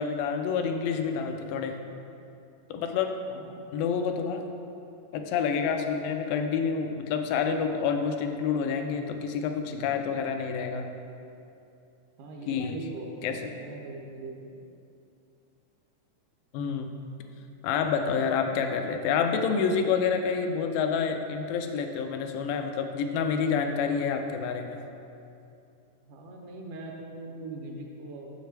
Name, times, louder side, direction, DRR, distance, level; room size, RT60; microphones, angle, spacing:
voice 1, 0.0-1.8 2.7-3.1 3.7-4.4 5.1-10.9 12.5-12.8 13.2-13.3 16.5-16.9 17.6-24.8, left 6 dB, 85° left, 5 dB, 2.2 m, -28 dB
voice 2, 3.3-3.6 9.6-10.0 12.2-14.6 26.0-28.3, right 2 dB, 80° right, 1 dB, 1.9 m, -41 dB
6.7 x 6.5 x 3.2 m, 2.7 s
omnidirectional pair, 3.9 m